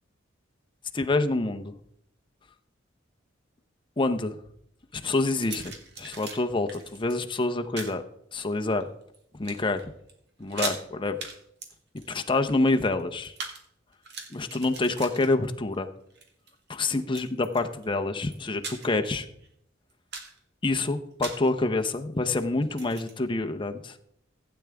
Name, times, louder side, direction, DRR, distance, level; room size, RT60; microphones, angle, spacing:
voice 1, 0.9-1.7 4.0-4.4 4.9-8.0 8.3-8.9 9.4-9.8 10.4-11.2 12.1-13.3 14.3-15.9 16.7-19.3 20.6-24.0, left 2 dB, 25° left, 6 dB, 0.8 m, -27 dB
sound 1, 5.0-6.4 6.7-7.2 7.8-8.0 8.6-9.2 9.4-9.8 10.1-10.2 10.4-10.8 11.2-11.4 11.6-13.6 13.9-15.8 16.1-16.5 17.1-17.9 18.3-19.0 19.4-19.5 19.9-20.4 21.2-21.5 22.6-23.1, right 4 dB, 60° right, 1.8 m, -39 dB
16.0 x 8.8 x 3.5 m, 0.73 s
head